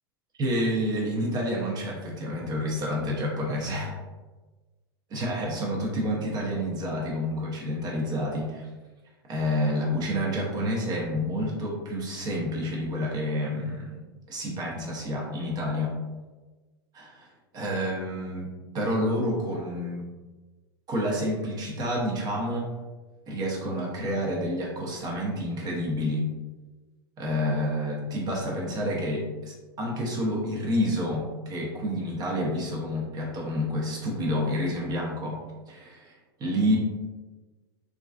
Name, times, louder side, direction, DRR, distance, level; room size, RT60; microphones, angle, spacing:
voice 1, 0.4-3.9 5.1-8.7 9.3-14.0 14.3-16.0 16.9-17.3 17.5-18.5 18.7-20.0 20.9-22.7 23.3-26.2 27.2-35.4 35.7-36.1 36.4-36.8, equal, 30° right, -3 dB, 0.6 m, -29 dB
2.4 x 2.3 x 2.2 m, 1.2 s
hypercardioid pair, 95°, 13 cm